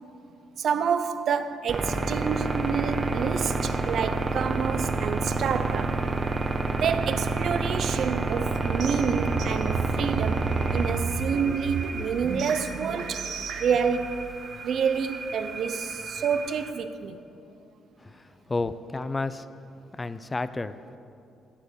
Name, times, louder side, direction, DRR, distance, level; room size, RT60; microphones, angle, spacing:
voice 1, 0.6-6.0 6.8-13.3 13.6-14.3 14.6-17.2, right 6 dB, 60° right, 0.7 m, -28 dB
sound 1, 1.7-16.7, right 3 dB, 40° right, 1.2 m, -30 dB
sound 2, 8.4-13.8, right 4 dB, 80° right, 1.3 m, -33 dB
voice 2, 18.5-19.4 19.9-20.7, left 3 dB, 20° left, 0.5 m, -30 dB
16.0 x 7.2 x 6.5 m
cardioid pair, 90°, 0 cm